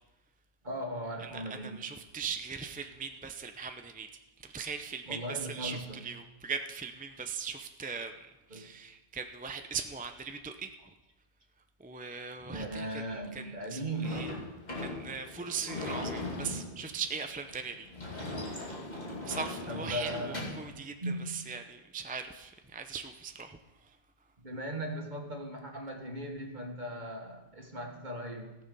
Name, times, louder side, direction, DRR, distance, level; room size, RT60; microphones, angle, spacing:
voice 1, 0.6-1.8 5.1-6.0 8.5-8.7 12.5-14.3 19.7-20.7 21.0-21.4 24.4-28.6, right 1 dB, 45° right, 2 dB, 1.9 m, -38 dB
voice 2, 1.2-10.7 11.8-14.3 14.8-17.9 18.7-18.8 19.2-23.6, right 6 dB, 10° right, 6 dB, 0.5 m, -40 dB
Sliding door / Slam, 14.0-20.7, left 2 dB, 40° left, 2.7 m, -39 dB
18.0 x 6.8 x 5.4 m, 1.0 s
omnidirectional pair, 1.1 m